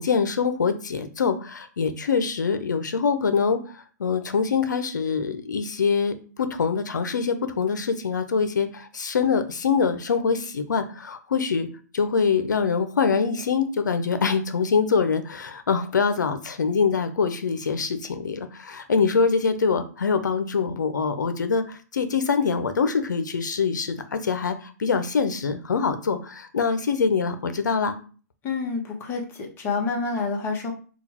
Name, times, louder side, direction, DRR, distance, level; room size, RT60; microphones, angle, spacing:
voice 1, 0.0-11.7 11.9-28.0, left 5 dB, 85° left, 9 dB, 0.6 m, -24 dB
voice 2, 28.4-30.7, left 4 dB, 25° left, 0 dB, 1.1 m, -28 dB
3.8 x 2.3 x 4.3 m, 0.38 s
hypercardioid pair, 135°, 10 cm